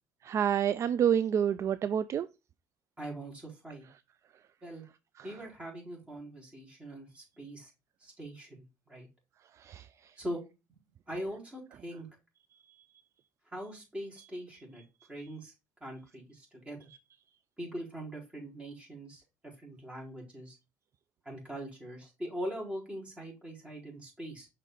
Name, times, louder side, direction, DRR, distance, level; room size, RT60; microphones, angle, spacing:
voice 1, 0.2-2.3 9.6-9.8, right 9 dB, 45° right, 0.4 m, -28 dB
voice 2, 3.0-3.9 4.6-4.8 5.2-7.7 8.0-9.1 10.2-10.4 11.1-12.1 13.5-14.8 15.1-15.5 15.8-16.9 17.6-20.6 21.2-24.5, equal, 20° right, 4.3 m, -42 dB
6.3 x 4.3 x 3.8 m
supercardioid pair, 85°, 7 cm